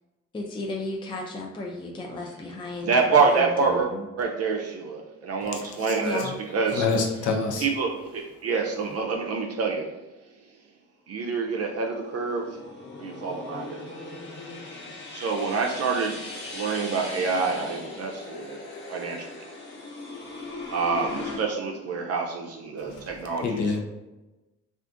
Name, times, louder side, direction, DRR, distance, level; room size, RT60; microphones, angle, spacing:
voice 1, 0.3-4.1 6.0-6.4, left 2 dB, 15° left, -1 dB, 0.4 m, -34 dB
voice 2, 2.8-3.9 4.2-6.2 6.5-6.9 7.6-9.9 11.1-12.6 13.0-13.8 15.1-16.2 16.5-18.6 18.9-19.5 20.7-23.6, right 4 dB, 55° right, 1 dB, 0.5 m, -26 dB
voice 3, 5.4-6.0 6.7-7.7 22.8-23.1 23.4-23.8, left 4 dB, 75° left, 2 dB, 0.7 m, -27 dB
sound 1, 11.3-21.4, left 2 dB, 40° left, 0.9 m, -39 dB
2.5 x 2.4 x 3.7 m, 1.1 s
cardioid pair, 90°, 30 cm